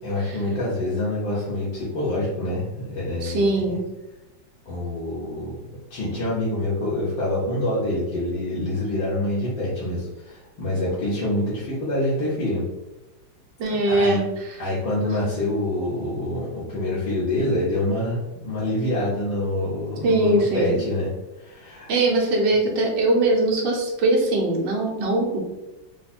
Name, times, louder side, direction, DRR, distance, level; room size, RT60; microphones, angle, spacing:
voice 1, 0.0-3.5 4.7-5.6 5.9-12.6 13.9-14.2 14.6-21.1 21.4-21.9, left 1 dB, 80° left, -9 dB, 1.8 m, -26 dB
voice 2, 3.2-3.8 13.6-14.6 20.0-20.8 21.9-25.4, right 2 dB, 70° right, -2 dB, 1.7 m, -21 dB
4.7 x 2.3 x 4.2 m, 1.0 s
omnidirectional pair, 2.1 m